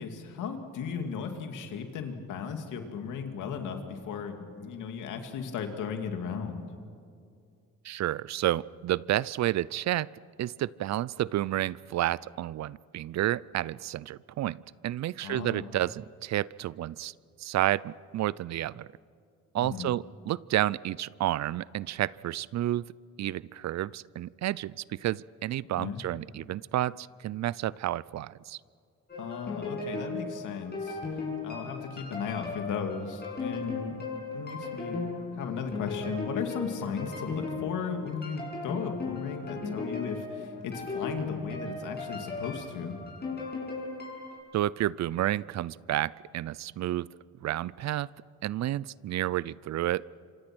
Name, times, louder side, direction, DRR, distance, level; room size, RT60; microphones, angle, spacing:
voice 1, 0.0-6.7 15.2-15.7 19.6-19.9 25.8-26.0 29.2-31.0 31.4-34.0 34.3-43.0, left 6 dB, 85° left, 5 dB, 2.6 m, -36 dB
voice 2, 7.8-10.1 10.4-14.6 14.8-17.1 17.4-18.9 19.5-22.8 23.2-28.6 44.5-47.1 47.4-48.1 48.4-50.0, right 13 dB, 65° right, 22 dB, 0.5 m, -30 dB
sound 1, 29.1-44.4, left 3 dB, 35° left, 6.7 m, -37 dB
27.0 x 26.0 x 6.2 m, 2.3 s
cardioid pair, 90°, 30 cm